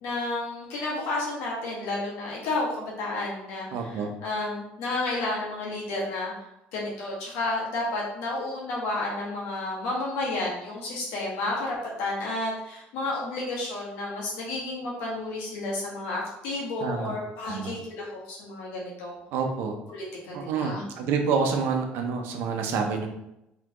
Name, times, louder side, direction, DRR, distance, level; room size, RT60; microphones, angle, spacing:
voice 1, 0.0-6.3 6.7-19.2 19.9-20.8, left 2 dB, 90° left, -5 dB, 1.7 m, -31 dB
voice 2, 3.7-4.1 16.8-17.1 17.4-17.7 19.3-19.8 20.3-23.1, right 5 dB, 75° right, 4 dB, 0.8 m, -28 dB
4.3 x 3.7 x 3.0 m, 0.85 s
cardioid pair, 140°, 4 cm